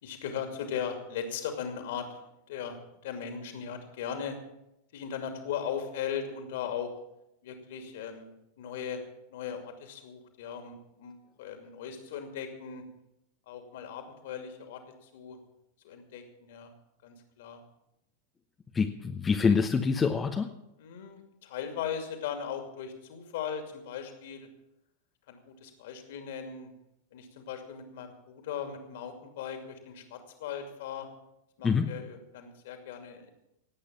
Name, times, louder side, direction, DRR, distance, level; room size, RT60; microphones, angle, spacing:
voice 1, 0.0-2.2 2.5-4.4 4.9-6.9 7.4-8.3 8.6-9.0 9.3-12.9 13.5-15.4 15.8-16.7 17.0-17.6 20.8-24.5 25.3-26.7 27.1-31.1 31.6-33.3, left 8 dB, 55° left, 6 dB, 2.5 m, -38 dB
voice 2, 18.7-20.5 31.6-31.9, left 5 dB, 15° left, 5 dB, 0.9 m, -26 dB
18.0 x 8.5 x 7.4 m, 0.86 s
figure-of-eight pair, 90°, 0 cm